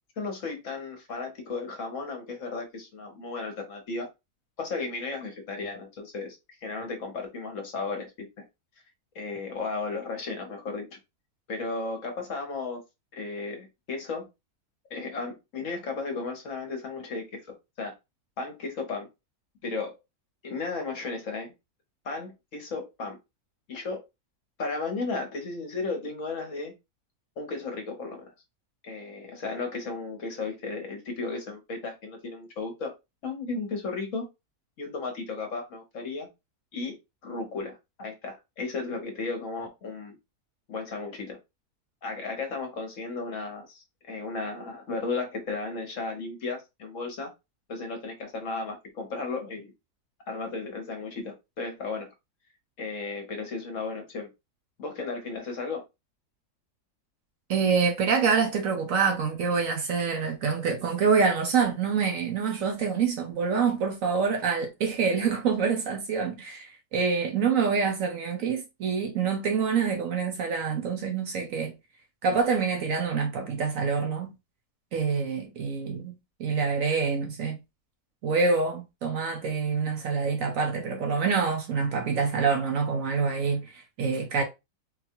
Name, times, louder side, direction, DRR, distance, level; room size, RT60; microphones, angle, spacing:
voice 1, 0.2-4.1 4.6-8.4 9.1-10.9 11.5-12.8 13.1-14.3 14.9-17.4 17.8-17.9 18.4-19.1 19.6-20.0 20.4-21.5 22.0-23.2 23.7-24.0 24.6-26.7 27.4-28.2 28.8-32.9 33.2-34.3 34.8-36.3 36.7-37.0 37.2-40.1 40.7-41.4 42.0-47.3 47.7-49.7 50.3-52.1 52.8-54.3 54.8-55.8, left 3 dB, 55° left, 1.1 m, -34 dB
voice 2, 57.5-71.7 72.2-74.3 74.9-76.1 76.4-77.6 78.2-84.4, right 5 dB, 65° right, 0.9 m, -26 dB
3.9 x 2.2 x 2.9 m
omnidirectional pair, 1.7 m